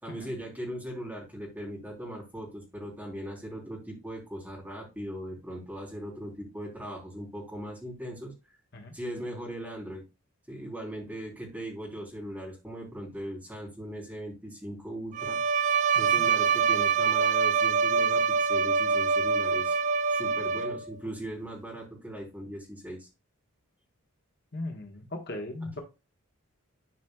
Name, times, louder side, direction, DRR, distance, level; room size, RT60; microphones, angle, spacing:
voice 1, 0.0-8.3 8.9-10.0 10.5-15.4 15.9-19.8 20.1-23.1 25.6-25.8, right 1 dB, 10° right, 3.7 m, -39 dB
Bowed string instrument, 15.1-21.0, right 5 dB, 35° right, 0.3 m, -25 dB
voice 2, 24.5-25.8, left 1 dB, 50° left, 1.4 m, -37 dB
11.5 x 5.2 x 2.4 m
head